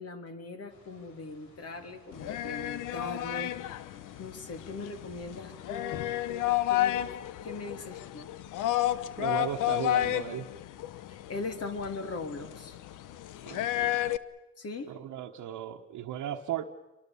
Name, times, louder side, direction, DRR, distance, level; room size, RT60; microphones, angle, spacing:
voice 1, 0.0-3.5 4.2-7.1 7.4-8.4 11.1-12.8 14.6-14.9, left 3 dB, 55° left, 7 dB, 3.1 m, -40 dB
sound 1, 0.7-6.6, left 4 dB, 70° left, 4.1 m, -58 dB
sound 2, 2.1-14.2, left 13 dB, 85° left, 0.9 m, -31 dB
voice 2, 9.2-10.5 13.4-14.0 14.9-16.6, right 11 dB, 80° right, 0 dB, 1.3 m, -36 dB
28.0 x 24.0 x 7.1 m, 1.1 s
cardioid pair, 90°, 30 cm